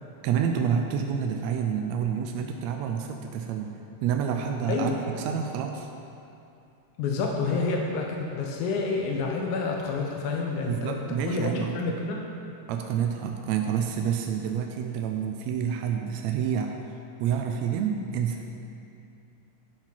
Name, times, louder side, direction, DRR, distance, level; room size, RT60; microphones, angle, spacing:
voice 1, 0.2-3.7 4.0-5.9 10.7-11.8 12.7-16.7 17.2-18.4, right 8 dB, 80° right, 3 dB, 1.7 m, -28 dB
voice 2, 7.0-12.2, left 4 dB, 85° left, 0 dB, 2.2 m, -28 dB
11.5 x 6.0 x 4.4 m, 2.7 s
omnidirectional pair, 3.4 m